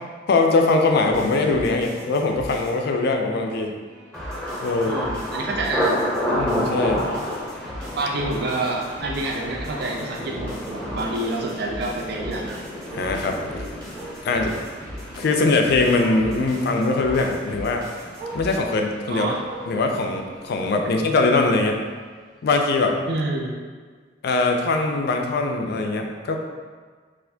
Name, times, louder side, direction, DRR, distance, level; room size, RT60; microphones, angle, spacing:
voice 1, 0.3-3.7 4.6-5.0 6.4-7.1 12.9-13.7 14.2-14.5 15.2-17.8 18.3-19.3 19.7-21.8 22.4-23.0 24.2-26.4, left 3 dB, 60° left, 3 dB, 0.4 m, -21 dB
sound 1, 1.1-18.6, equal, 15° right, 1.1 m, -40 dB
Thunder, 4.1-19.9 20.1-20.8 21.2-21.5, equal, ahead, 0.6 m, -31 dB
voice 2, 4.9-5.9 8.0-12.6 19.1-19.4 23.1-23.6, right 2 dB, 60° right, 0 dB, 0.5 m, -28 dB
Bark, 6.4-6.6 7.0-7.1 7.5-7.6 7.8-7.9 9.4-9.5 12.0-12.1 12.9-13.1 13.9-14.2 15.4-15.5 15.9-16.3 17.0-17.3 18.1-18.5 19.4-19.9 20.8-20.9, right 2 dB, 80° right, 1.0 m, -39 dB
4.1 x 2.5 x 2.7 m, 1.5 s
head